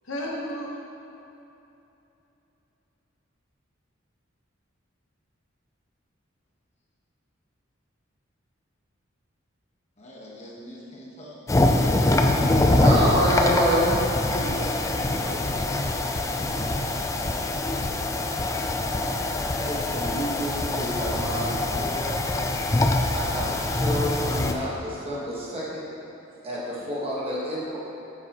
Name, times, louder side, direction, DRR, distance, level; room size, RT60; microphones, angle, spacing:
voice 1, 0.1-0.8 14.3-16.1, equal, 85° left, -2 dB, 1.1 m, -35 dB
voice 2, 10.0-12.1 12.9-13.6, equal, 35° left, -4 dB, 1.2 m, -41 dB
sound 1, 11.5-24.5, left 2 dB, 15° left, 0.3 m, -24 dB
voice 3, 12.8-14.0 14.3-14.4 15.8-15.9 16.7-16.8 19.6-22.1 23.1-25.8 26.4-27.8, equal, 30° right, -7 dB, 1.4 m, -28 dB
8.2 x 6.5 x 3.0 m, 2.9 s
head